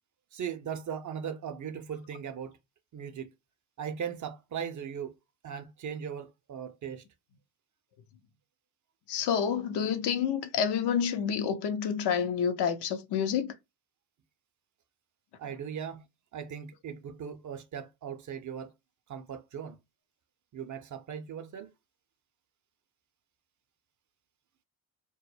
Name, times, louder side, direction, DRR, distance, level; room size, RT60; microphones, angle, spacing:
voice 1, 0.3-2.6 2.9-3.3 3.8-5.1 5.4-7.0 15.4-16.1 16.3-18.7 19.1-19.8 20.5-21.7, right 8 dB, 40° right, 0.5 m, -38 dB
voice 2, 9.1-13.5, left 7 dB, 60° left, 0.7 m, -28 dB
2.2 x 2.0 x 3.2 m
hypercardioid pair, 55°, 47 cm